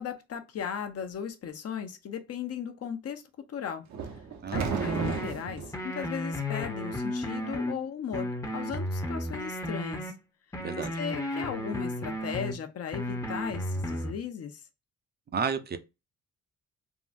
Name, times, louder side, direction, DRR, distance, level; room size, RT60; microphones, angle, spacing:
voice 1, 0.0-3.8 4.5-10.1 10.8-14.6, left 7 dB, 55° left, 0.7 m, -37 dB
sound 1, 3.9-5.8, right 5 dB, 65° right, 0.8 m, -33 dB
voice 2, 4.4-4.8 10.6-10.9 15.3-15.8, right 6 dB, 35° right, 0.5 m, -32 dB
sound 2, 4.5-5.3 5.7-7.7 8.1-10.1 10.5-12.5 12.9-14.1, left 1 dB, 10° left, 0.7 m, -33 dB
3.6 x 2.0 x 2.5 m
cardioid pair, 90°, 30 cm